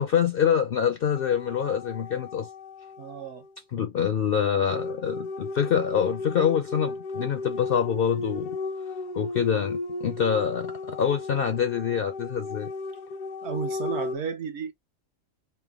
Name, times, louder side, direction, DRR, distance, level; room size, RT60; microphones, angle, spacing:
voice 1, 0.0-2.5 3.7-8.5 9.1-12.7, left 8 dB, 65° left, 0.5 m, -25 dB
sound 1, 1.1-3.5 4.7-14.2, left 3 dB, 85° left, 1.0 m, -35 dB
voice 2, 3.0-3.4 13.4-14.7, right 7 dB, 65° right, 0.9 m, -33 dB
3.2 x 2.0 x 3.3 m
omnidirectional pair, 1.4 m